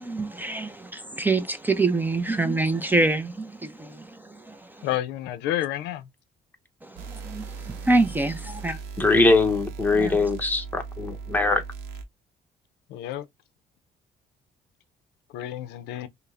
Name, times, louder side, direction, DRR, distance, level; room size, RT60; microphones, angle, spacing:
voice 1, 0.0-4.9 6.8-8.8 10.0-10.2, right 2 dB, 10° right, 0.4 m, -26 dB
voice 2, 4.8-6.1 12.9-13.3 15.3-16.1, left 12 dB, 85° left, 0.4 m, -30 dB
sound 1, 7.0-12.0, right 5 dB, 80° right, 0.7 m, -38 dB
voice 3, 9.0-11.6, left 3 dB, 10° left, 0.7 m, -21 dB
5.3 x 2.0 x 2.3 m
cardioid pair, 110°, 17 cm